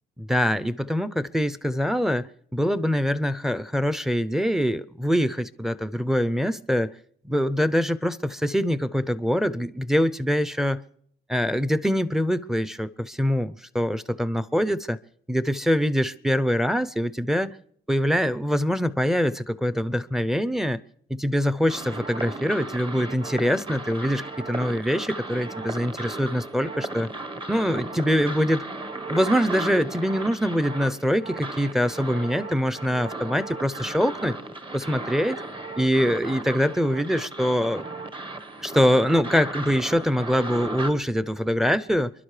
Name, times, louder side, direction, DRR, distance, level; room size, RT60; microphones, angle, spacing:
voice 1, 0.2-6.9 7.2-10.8 11.3-15.0 15.3-17.6 17.9-20.8 21.1-27.1 27.5-28.7 29.1-34.4 34.7-35.4 35.8-37.9 38.6-42.1, equal, ahead, 0.6 m, -24 dB
sound 1, 21.7-40.9, right 2 dB, 25° right, 1.2 m, -35 dB
28.5 x 11.5 x 3.3 m
cardioid pair, 90°, 20 cm